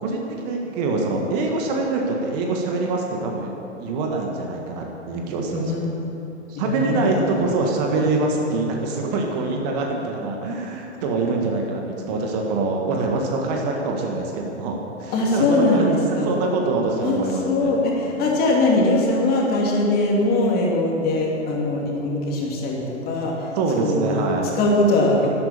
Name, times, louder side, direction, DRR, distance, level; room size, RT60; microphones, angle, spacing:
voice 1, 0.0-3.5 3.8-5.9 6.5-17.8 18.2-18.3 23.5-24.5, right 3 dB, 35° right, 1 dB, 1.7 m, -24 dB
voice 2, 5.5-5.9 6.6-7.5 15.1-16.3 17.0-25.3, left 2 dB, 25° left, -2 dB, 2.7 m, -21 dB
12.0 x 12.0 x 6.9 m, 2.9 s
figure-of-eight pair, 110°, 36 cm